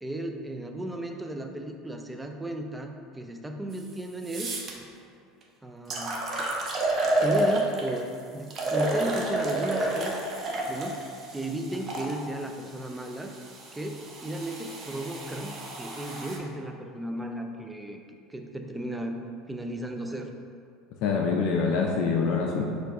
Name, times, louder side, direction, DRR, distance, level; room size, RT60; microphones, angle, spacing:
voice 1, 0.0-4.9 5.6-6.5 7.0-10.2 10.7-11.1 11.3-13.3 13.7-18.0 18.3-19.2 19.5-20.3, right 1 dB, 10° right, 4 dB, 0.5 m, -35 dB
sound 1, 3.7-3.8 4.2-4.7 5.4-5.5 5.9-8.0 8.5-12.1 12.9-16.4, right 1 dB, 40° right, 0.8 m, -30 dB
voice 2, 21.0-22.6, left 5 dB, 60° left, 0 dB, 0.4 m, -25 dB
4.5 x 2.5 x 4.6 m, 2.4 s
hypercardioid pair, 75°, 0 cm